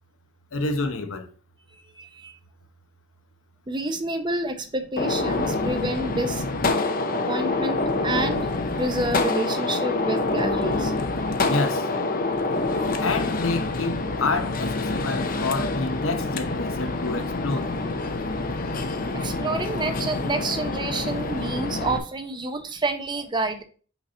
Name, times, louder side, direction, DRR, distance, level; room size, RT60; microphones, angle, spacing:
voice 1, 0.5-1.3 11.5-11.9 13.0-17.7, left 3 dB, 75° left, 0.8 m, -28 dB
voice 2, 2.0-2.3 3.7-6.4 7.3-8.4 8.8-10.9 19.1-23.6, right 2 dB, 20° right, 0.7 m, -28 dB
Gunshot gunfire, 5.0-22.0, left 3 dB, 45° left, 0.6 m, -26 dB
5.9 x 4.1 x 4.3 m
head